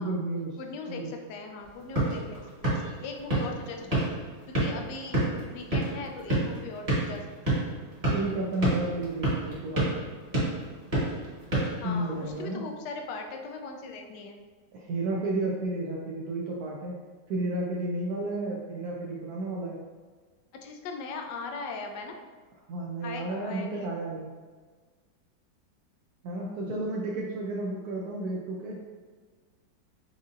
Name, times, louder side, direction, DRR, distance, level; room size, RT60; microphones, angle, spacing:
voice 1, 0.0-0.6 0.9-1.1 8.1-9.9 11.8-12.7 14.7-17.0 17.3-19.8 22.7-24.3 26.2-28.8, right 2 dB, 70° right, -3 dB, 0.9 m, -32 dB
voice 2, 0.6-2.7 3.0-4.1 4.5-7.7 11.8-14.4 20.5-22.2 23.0-23.9, left 4 dB, 75° left, 3 dB, 1.1 m, -39 dB
sound 1, 1.6-12.4, right 1 dB, 20° right, 1.2 m, -30 dB
6.2 x 2.7 x 2.5 m, 1.5 s
omnidirectional pair, 2.0 m